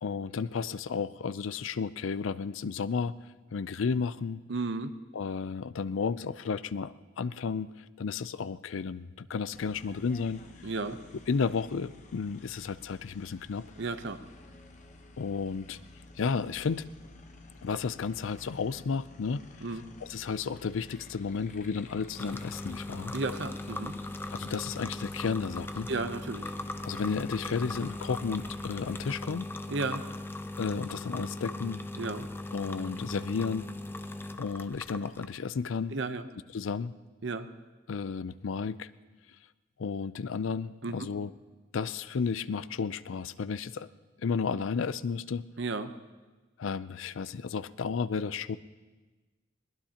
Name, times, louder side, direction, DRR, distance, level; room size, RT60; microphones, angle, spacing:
voice 1, 0.0-3.1 3.5-4.4 5.1-7.7 8.0-10.4 11.3-13.6 15.2-15.8 16.2-16.8 17.6-19.4 20.0-23.1 24.3-25.9 26.8-29.5 30.6-31.8 32.5-33.6 34.4-36.0 36.5-36.9 37.9-38.9 39.8-41.3 41.7-43.9 44.2-45.4 46.6-48.6, left 5 dB, 80° left, 16 dB, 0.4 m, -32 dB
voice 2, 4.5-4.9 10.6-11.0 13.8-14.2 19.6-19.9 23.1-24.0 25.9-26.5 29.7-30.0 32.0-32.3 35.9-36.3 37.2-37.5 40.8-40.9 45.6-45.9, right 3 dB, 65° right, 10 dB, 0.8 m, -33 dB
sound 1, 9.5-29.2, left 2 dB, 40° left, 1.0 m, -52 dB
sound 2, 22.2-35.2, left 2 dB, 10° left, 0.5 m, -39 dB
21.5 x 19.5 x 2.9 m, 1.3 s
head